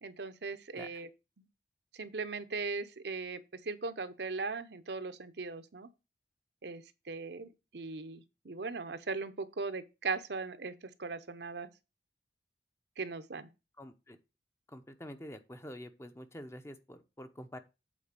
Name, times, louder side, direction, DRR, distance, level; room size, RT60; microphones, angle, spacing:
voice 1, 0.0-1.1 1.4-1.5 2.0-5.9 6.6-11.7 13.0-13.5, right 4 dB, 60° right, 0.8 m, -39 dB
voice 2, 13.8-14.2 14.7-17.6, equal, 15° left, 0.7 m, -47 dB
8.5 x 4.2 x 6.7 m
head